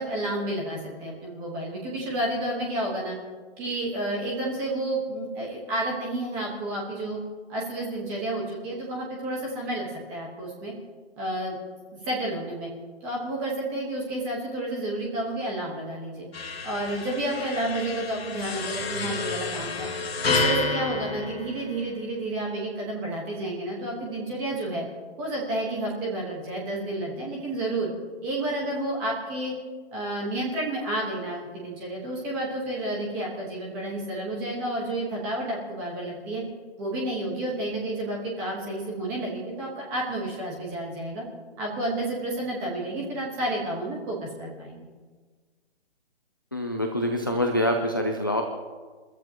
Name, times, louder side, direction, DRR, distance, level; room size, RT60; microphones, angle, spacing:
voice 1, 0.0-3.2 3.6-7.2 7.5-10.7 11.2-11.6 11.9-12.7 13.0-16.3 16.6-19.9 20.2-24.9 25.2-27.9 28.2-29.5 29.9-36.4 36.8-41.2 41.6-44.9, right 1 dB, 5° right, -2 dB, 1.3 m, -30 dB
sound 1, 16.3-22.1, left 3 dB, 65° left, 2.1 m, -30 dB
voice 2, 46.5-48.4, left 1 dB, 20° left, 2 dB, 0.5 m, -25 dB
29.5 x 13.5 x 3.0 m, 1.5 s
hypercardioid pair, 180°, 32 cm